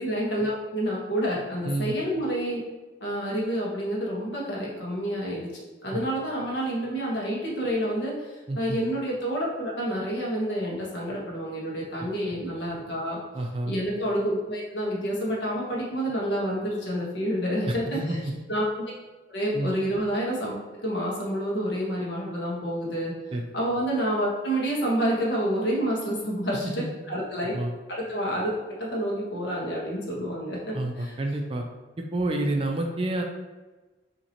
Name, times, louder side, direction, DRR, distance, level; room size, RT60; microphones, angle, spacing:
voice 1, 0.0-2.6 3.0-13.2 13.7-18.2 18.5-18.9 19.3-20.5 20.8-23.1 23.5-27.5 27.9-28.5 28.8-31.1, equal, 65° left, -4 dB, 1.3 m, -28 dB
voice 2, 8.5-8.8 13.3-13.7 17.7-18.3 19.5-19.7 23.3-23.4 26.8-26.9 27.5-27.7 30.7-31.7 32.0-33.2, right 1 dB, 25° right, 2 dB, 0.4 m, -29 dB
5.6 x 2.9 x 2.9 m, 1.2 s
head